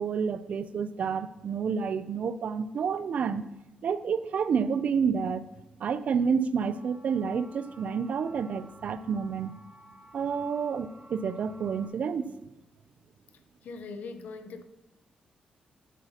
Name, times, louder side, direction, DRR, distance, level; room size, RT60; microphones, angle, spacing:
voice 1, 0.0-3.4 3.8-5.4 5.8-9.5 10.1-12.3, right 6 dB, 60° right, 0.4 m, -29 dB
sound 1, 6.6-11.9, right 1 dB, 35° right, 2.6 m, -54 dB
voice 2, 13.6-14.6, left 4 dB, 75° left, 0.7 m, -40 dB
10.0 x 8.0 x 2.9 m
cardioid pair, 115°, 3 cm